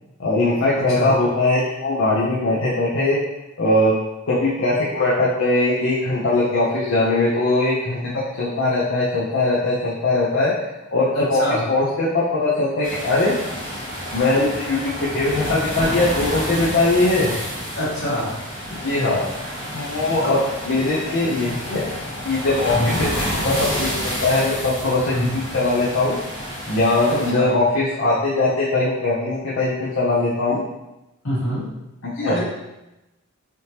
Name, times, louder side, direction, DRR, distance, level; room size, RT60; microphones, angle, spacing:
voice 1, 0.2-3.2 3.6-3.9 4.3-8.0 8.3-10.5 10.9-11.4 11.7-13.3 14.1-17.3 18.7-19.3 19.7-20.4 20.7-21.9 22.2-26.2 26.7-30.6 32.0-32.3, left 2 dB, 60° left, -7 dB, 0.5 m, -20 dB
voice 2, 11.1-11.6 17.7-18.3 20.2-20.4 22.7-23.0 25.1-25.3 27.1-27.6 31.2-31.6 32.3-32.4, left 1 dB, 80° left, -7 dB, 1.4 m, -24 dB
sound 1, 12.8-27.3, equal, 25° left, 1.2 m, -29 dB
3.4 x 2.8 x 2.8 m, 0.97 s
head